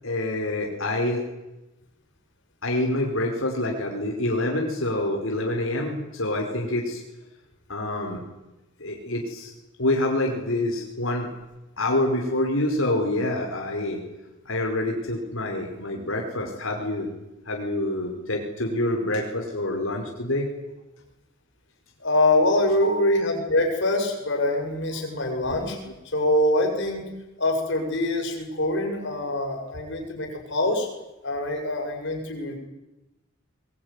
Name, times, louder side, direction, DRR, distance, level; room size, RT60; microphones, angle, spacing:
voice 1, 0.0-1.2 2.6-7.0 7.7-8.2 8.8-9.5 9.8-11.3 11.8-14.0 14.4-17.1 17.5-20.5 22.8-23.0, left 1 dB, 80° left, 1 dB, 5.1 m, -26 dB
voice 2, 22.0-25.8 26.1-27.0 27.4-30.9 31.2-32.6, left 1 dB, 60° left, 2 dB, 7.3 m, -24 dB
22.5 x 22.0 x 9.9 m, 1.0 s
head